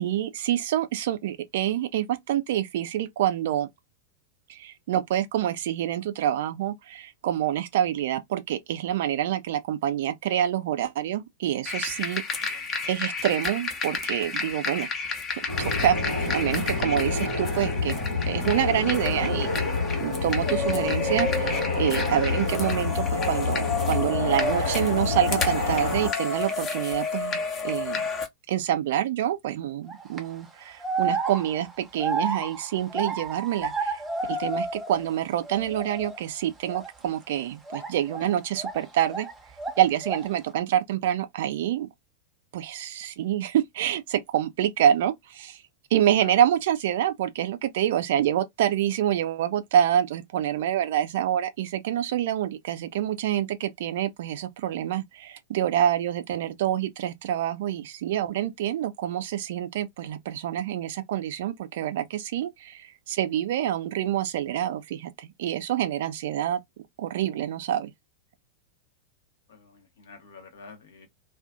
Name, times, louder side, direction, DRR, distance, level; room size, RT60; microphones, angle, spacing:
voice 1, 0.0-3.7 4.5-14.9 15.3-16.0 16.2-19.7 20.0-28.0 28.5-34.0 34.3-39.3 39.8-41.9 42.5-45.6 45.9-66.6 67.0-67.9, right 11 dB, 55° right, 0.3 m, -27 dB
sound 1, 11.6-28.3, left 4 dB, 25° left, 0.6 m, -31 dB
sound 2, 15.5-26.1, left 3 dB, 85° left, 1.3 m, -28 dB
sound 3, 29.9-30.2 30.8-35.2 35.4-36.2 36.6-36.9 37.7-39.3 39.6-40.4, right 3 dB, 10° right, 0.6 m, -31 dB
voice 2, 69.5-71.1, left 4 dB, 60° left, 0.7 m, -48 dB
2.4 x 2.3 x 2.3 m
figure-of-eight pair, 90°, 0 cm